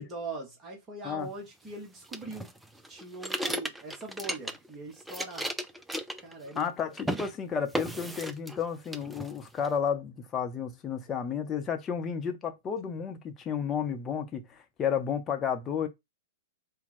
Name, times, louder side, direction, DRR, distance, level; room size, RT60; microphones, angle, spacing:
voice 1, 0.0-2.5 2.9-5.5 6.2-6.7 7.0-7.1, right 2 dB, 25° right, 1.3 m, -41 dB
sound 1, 2.1-4.7 5.0-6.7 7.0-7.3 7.7-8.6 8.9-9.7, right 1 dB, 5° right, 0.4 m, -35 dB
voice 2, 6.5-15.9, left 7 dB, 25° left, 0.9 m, -32 dB
4.3 x 2.3 x 4.3 m
figure-of-eight pair, 100°, 0 cm